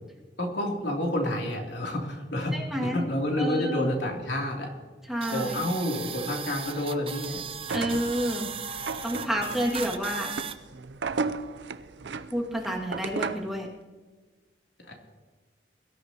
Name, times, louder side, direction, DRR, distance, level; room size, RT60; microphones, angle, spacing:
voice 1, 0.4-4.7 5.3-7.5 9.3-9.4 14.8-15.0, left 1 dB, 70° left, 0 dB, 3.1 m, -29 dB
voice 2, 2.5-3.0 3.3-3.9 5.1-5.6 7.7-8.5 9.0-10.3 12.3-13.7, equal, ahead, -3 dB, 2.2 m, -29 dB
sound 1, 5.2-10.6, right 6 dB, 30° right, 0.7 m, -37 dB
sound 2, 7.6-13.6, right 4 dB, 75° right, 0.6 m, -35 dB
23.0 x 13.5 x 3.0 m, 1.4 s
head